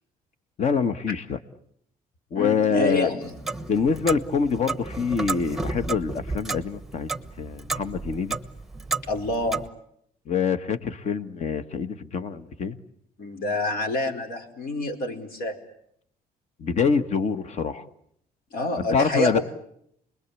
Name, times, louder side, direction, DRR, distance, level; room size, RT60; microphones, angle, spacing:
voice 1, 0.6-1.4 2.3-3.2 3.6-7.1 7.4-8.4 10.3-12.8 16.6-17.8 18.9-19.4, left 5 dB, 45° left, 12 dB, 1.5 m, -25 dB
voice 2, 2.3-3.3 9.1-9.6 13.2-15.6 18.5-19.4, left 2 dB, 75° left, 5 dB, 4.9 m, -27 dB
Clock, 3.2-9.7, right 3 dB, ahead, 1.1 m, -33 dB
29.5 x 21.5 x 8.4 m, 0.72 s
cardioid pair, 135°, 15 cm